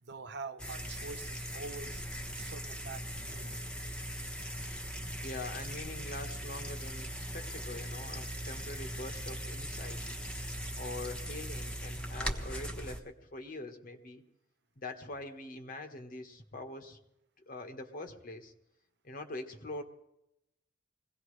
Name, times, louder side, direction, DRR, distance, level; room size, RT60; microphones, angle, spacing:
voice 1, 0.0-2.0 2.4-3.6, right 4 dB, 65° right, 10 dB, 0.9 m, -45 dB
sound 1, 0.6-13.0, equal, 5° left, 1.2 m, -40 dB
voice 2, 5.2-10.0 10.8-14.2 14.8-17.0 17.5-18.5 19.0-19.8, left 2 dB, 50° left, 5 dB, 1.4 m, -44 dB
22.0 x 17.0 x 3.3 m, 0.83 s
head